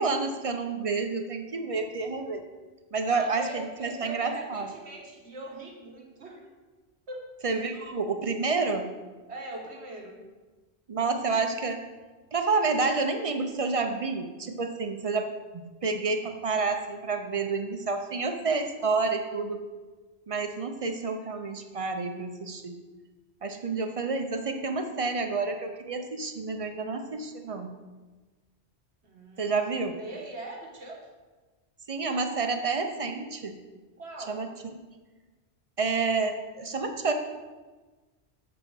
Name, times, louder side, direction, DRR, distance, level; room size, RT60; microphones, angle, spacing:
voice 1, 0.0-2.4 2.9-4.7 7.4-8.9 10.9-11.9 12.3-15.3 15.5-19.6 20.3-22.8 23.4-27.8 29.4-29.9 31.9-33.6 34.3-34.5 35.8-37.1, right 4 dB, 45° right, 5 dB, 0.5 m, -29 dB
voice 2, 3.0-6.5 7.1-7.2 9.3-10.2 29.0-29.6 30.0-31.1 34.0-34.4, right 2 dB, 75° right, -1 dB, 1.6 m, -41 dB
7.6 x 4.0 x 6.1 m, 1.3 s
omnidirectional pair, 1.1 m